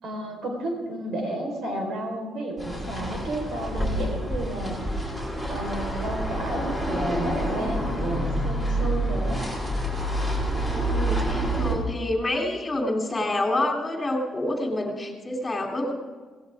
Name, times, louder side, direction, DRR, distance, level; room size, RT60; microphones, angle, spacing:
voice 1, 0.0-4.8 5.5-9.4, right 1 dB, 70° right, 2 dB, 4.6 m, -31 dB
sound 1, 2.6-11.7, right 1 dB, 20° right, 5.8 m, -28 dB
voice 2, 10.6-15.9, left 1 dB, 25° left, 1 dB, 3.3 m, -28 dB
17.0 x 16.5 x 3.7 m, 1.5 s
cardioid pair, 90°, 0 cm